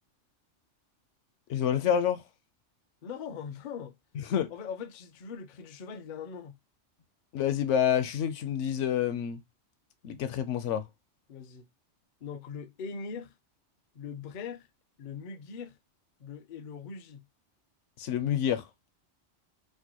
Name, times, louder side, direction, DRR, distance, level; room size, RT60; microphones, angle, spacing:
voice 1, 1.5-2.2 4.2-4.5 7.3-9.4 10.0-10.8 18.0-18.7, left 9 dB, 75° left, 0.9 m, -28 dB
voice 2, 3.0-4.0 4.5-6.6 11.3-11.7 12.2-13.3 13.9-14.7 15.0-15.8 16.2-17.3, left 6 dB, 55° left, 0.5 m, -41 dB
4.4 x 2.1 x 2.9 m
omnidirectional pair, 1.3 m